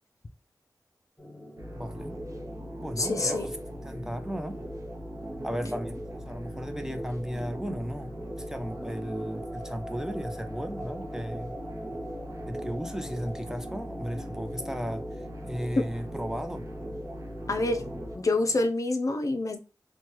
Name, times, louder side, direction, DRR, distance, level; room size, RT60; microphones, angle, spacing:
sound 1, 1.2-18.7, equal, 20° left, 1.2 m, -45 dB
sound 2, 1.6-18.2, equal, 50° right, 0.6 m, -39 dB
voice 1, 1.7-2.2 2.8-4.6 5.4-11.6 12.5-15.1 15.4-16.7, equal, 5° right, 0.4 m, -35 dB
voice 2, 3.0-3.5 15.8-15.9 17.5-17.8 18.2-19.6, left 2 dB, 55° left, 0.4 m, -26 dB
3.1 x 2.2 x 2.9 m
wide cardioid pair, 50°, 7 cm